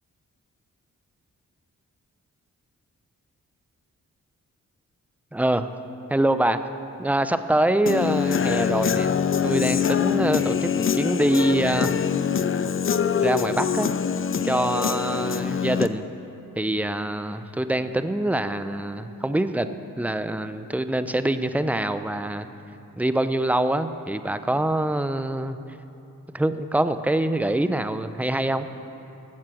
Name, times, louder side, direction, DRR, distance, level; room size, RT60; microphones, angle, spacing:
voice 1, 5.3-5.7 6.1-6.6 7.0-9.1 9.4-11.9 12.6-12.7 13.2-13.9 14.4-16.1 16.6-19.7 20.0-22.5 23.0-25.6 26.3-28.6, right 1 dB, 5° right, 11 dB, 0.6 m, -24 dB
Human voice / Guitar, 7.9-15.9, left 7 dB, 40° left, 0.6 m, -24 dB
13.0 x 7.4 x 7.7 m, 2.8 s
supercardioid pair, 45°, 33 cm